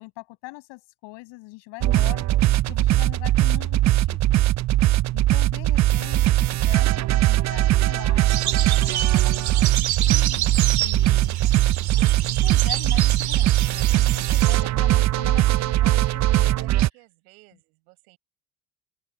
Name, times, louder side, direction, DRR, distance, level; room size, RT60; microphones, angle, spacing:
voice 1, 0.0-2.3 2.7-4.4 5.1-16.7, left 24 dB, 75° left, 7.3 m, -42 dB
sound 1, 1.8-16.9, right 15 dB, 40° right, 0.5 m, -20 dB
sound 2, 8.3-14.6, right 13 dB, 55° right, 2.4 m, -29 dB
voice 2, 16.9-18.2, right 27 dB, 80° right, 6.8 m, -54 dB
open air
hypercardioid pair, 60°, 43 cm